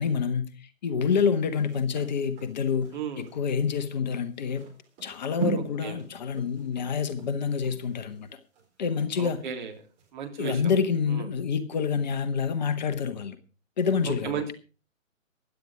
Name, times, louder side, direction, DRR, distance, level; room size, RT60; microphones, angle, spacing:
voice 1, 0.0-2.9 3.2-4.7 5.0-8.3 8.8-9.4 10.4-13.4 13.8-14.4, left 6 dB, 35° left, 10 dB, 1.3 m, -27 dB
sound 1, 1.0-9.6 10.0-10.1, right 4 dB, 20° right, 4.4 m, -40 dB
voice 2, 2.9-3.2 5.8-5.9 9.2-9.7 10.1-10.6 11.1-11.2 14.2-14.5, right 7 dB, 35° right, 4 dB, 3.2 m, -34 dB
16.0 x 11.0 x 4.9 m, 0.36 s
figure-of-eight pair, 135°, 40 cm